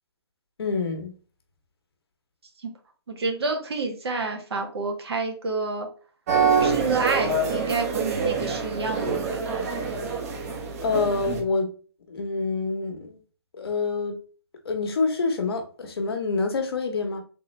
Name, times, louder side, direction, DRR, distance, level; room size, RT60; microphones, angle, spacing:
voice 1, 0.6-1.1 10.8-11.8 12.1-13.2 13.5-14.2 14.6-17.2, left 4 dB, 60° left, 1.2 m, -26 dB
voice 2, 3.1-5.9 6.6-9.5, right 3 dB, 65° right, 1.4 m, -29 dB
sound 1, 6.3-11.4, right 5 dB, 35° right, 1.0 m, -26 dB
3.8 x 3.7 x 3.3 m
hypercardioid pair, 150°, 14 cm